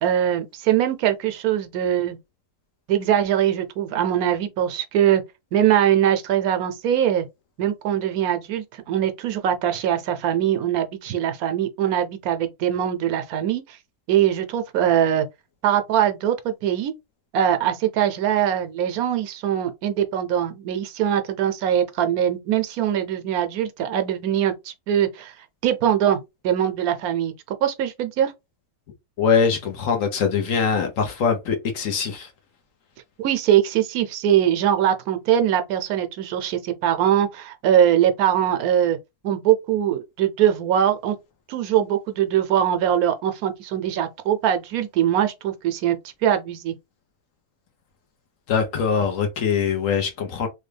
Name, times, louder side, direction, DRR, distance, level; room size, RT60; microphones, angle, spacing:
voice 1, 0.0-2.2 2.9-5.2 5.5-7.3 7.6-13.6 14.1-15.3 15.6-16.9 17.3-25.3 25.6-27.3 27.6-28.3 33.2-39.0 39.2-41.2 41.5-46.7, right 10 dB, 75° right, 1.0 m, -22 dB
voice 2, 29.2-32.3 48.5-50.5, left 6 dB, 65° left, 1.1 m, -22 dB
3.2 x 2.3 x 3.2 m
omnidirectional pair, 1.6 m